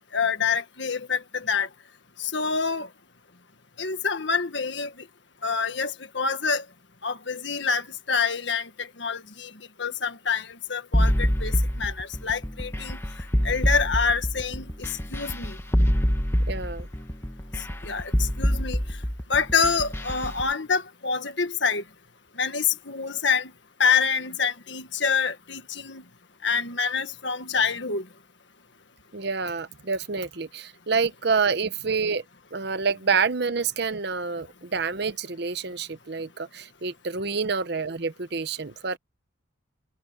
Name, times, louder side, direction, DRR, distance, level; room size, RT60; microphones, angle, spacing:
voice 1, 0.1-1.7 2.2-2.9 3.8-4.9 5.4-6.6 7.0-9.5 9.8-13.0 13.4-15.6 17.8-18.8 19.3-21.8 22.4-23.5 23.8-26.0 26.4-28.0, left 5 dB, 65° left, 1.7 m, -26 dB
sound 1, 10.9-20.5, equal, 10° left, 1.2 m, -25 dB
voice 2, 16.5-16.9 29.1-32.2 32.5-39.0, right 5 dB, 55° right, 0.9 m, -27 dB
head